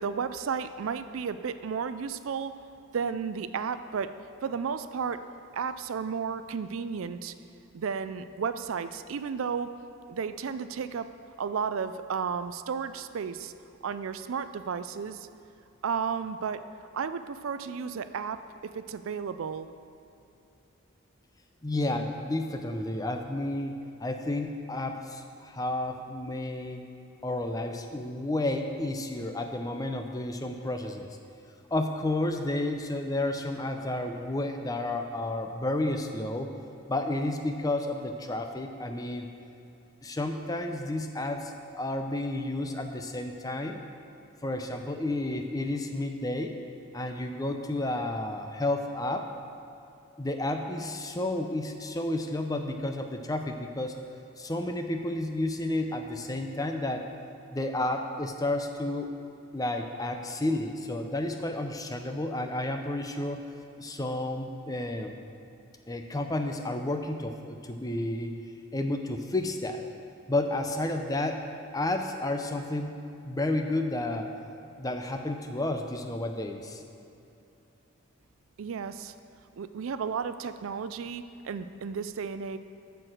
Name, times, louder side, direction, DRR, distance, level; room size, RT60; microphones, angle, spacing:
voice 1, 0.0-2.5 2.9-4.1 4.4-5.2 5.5-7.3 7.7-9.7 10.1-11.1 11.4-13.5 13.8-15.3 15.8-16.6 16.9-18.4 18.7-19.7 78.6-79.1 79.6-82.6, right 6 dB, 75° right, 12 dB, 0.4 m, -33 dB
voice 2, 21.6-23.7 24.0-26.8 27.2-31.1 31.7-36.5 36.9-39.3 40.0-43.8 44.4-46.5 46.9-49.3 50.2-54.0 54.4-57.1 57.5-59.1 59.5-63.4 63.8-65.1 65.9-68.3 68.7-69.8 70.3-71.5 71.7-72.9 73.2-74.3 74.8-76.8, left 1 dB, 15° left, 5 dB, 0.6 m, -31 dB
13.5 x 4.6 x 6.4 m, 2.8 s
head